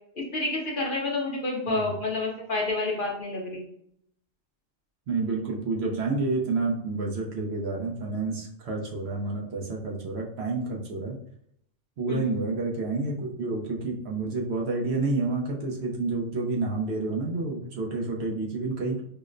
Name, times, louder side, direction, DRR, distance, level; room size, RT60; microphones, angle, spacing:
voice 1, 0.1-3.7 12.1-12.2, left 2 dB, 50° left, -1 dB, 0.7 m, -29 dB
voice 2, 5.1-11.2 12.0-19.0, right 3 dB, 65° right, -1 dB, 0.9 m, -29 dB
4.9 x 2.1 x 2.4 m, 0.72 s
omnidirectional pair, 1.3 m